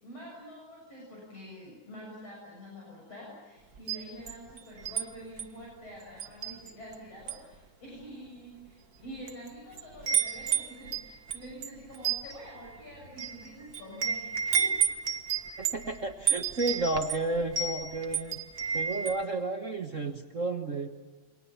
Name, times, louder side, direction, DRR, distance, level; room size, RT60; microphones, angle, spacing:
voice 1, 0.0-14.7, equal, 50° left, -3 dB, 8.1 m, -47 dB
Wind chime, 3.7-5.0 5.4-5.6 6.2-6.9 7.2-7.5 8.3-8.4 9.0-9.5 9.7-19.2, right 7 dB, 40° right, 1.5 m, -31 dB
voice 2, 15.6-18.4 18.7-20.9, right 2 dB, 60° right, 3 dB, 0.7 m, -32 dB
29.0 x 24.5 x 7.3 m, 1.2 s
omnidirectional pair, 3.7 m